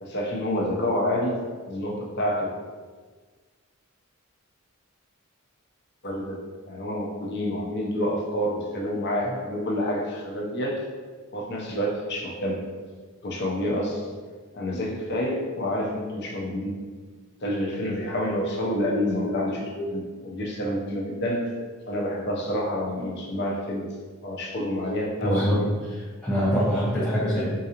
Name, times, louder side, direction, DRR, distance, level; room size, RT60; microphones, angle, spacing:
voice 1, 0.0-2.5 6.0-6.4 6.7-10.9 11.3-12.6 13.2-14.1 14.5-16.7 17.4-21.5 21.8-23.9 24.2-25.7, equal, 55° left, -2 dB, 0.7 m, -28 dB
voice 2, 25.2-27.5, equal, 10° left, -9 dB, 0.5 m, -25 dB
3.9 x 2.5 x 2.8 m, 1.5 s
head